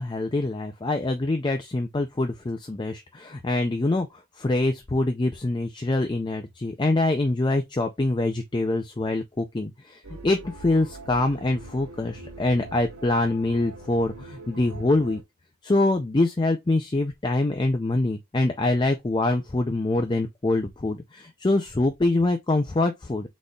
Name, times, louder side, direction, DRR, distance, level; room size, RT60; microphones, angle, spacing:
voice 1, 0.0-4.1 4.4-15.2 15.6-23.3, left 2 dB, 20° left, 0.4 m, -25 dB
sound 1, 10.0-15.2, right 2 dB, 80° right, 1.7 m, -43 dB
5.0 x 4.1 x 2.3 m
head